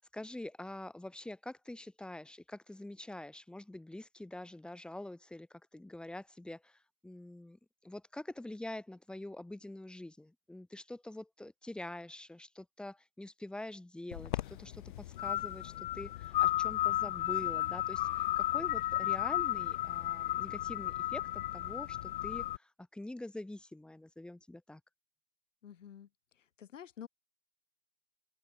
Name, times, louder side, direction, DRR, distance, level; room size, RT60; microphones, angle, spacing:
voice 1, 0.0-24.8, left 1 dB, ahead, 4.3 m, -46 dB
sound 1, 14.1-22.6, left 14 dB, 30° left, 1.4 m, -34 dB
voice 2, 25.6-26.1 26.6-27.1, left 9 dB, 55° left, 7.4 m, -48 dB
open air
figure-of-eight pair, 140°, 45 cm